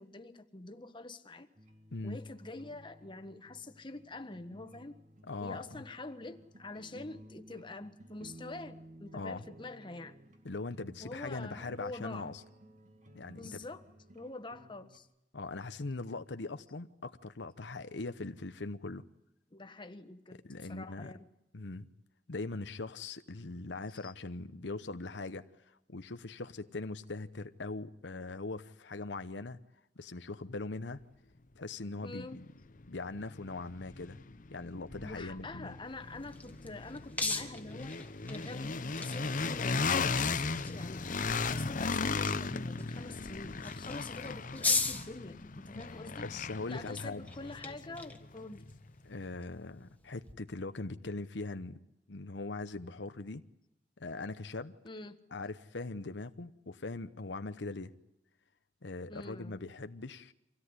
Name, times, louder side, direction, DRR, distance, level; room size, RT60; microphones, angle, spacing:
voice 1, 0.0-1.5 2.0-5.0 5.4-10.2 11.0-12.3 13.3-13.8 14.1-15.1 19.5-20.4 20.7-21.3 24.0-24.1 32.0-32.4 35.0-38.0 38.3-41.0 41.5-46.2 46.7-48.6 54.8-55.2 59.1-59.6, left 2 dB, 25° left, 8 dB, 1.3 m, -46 dB
sound 1, 1.6-15.0, right 1 dB, 45° right, 2.4 m, -56 dB
voice 2, 5.3-5.8 9.1-9.4 10.4-12.4 13.1-13.5 15.3-19.0 20.4-21.1 21.5-21.9 22.3-29.6 30.0-31.0 31.6-32.5 32.9-34.2 34.5-35.8 46.2-47.3 49.0-51.8 52.1-53.4 54.0-54.7 55.3-57.9 58.8-60.3, left 3 dB, 80° left, 10 dB, 0.9 m, -41 dB
sound 2, 32.2-32.3 32.8-48.8, left 4 dB, 50° left, 0.9 m, -37 dB
sound 3, 35.9-50.3, left 3 dB, 10° left, 1.6 m, -41 dB
25.5 x 17.0 x 9.7 m, 0.89 s
head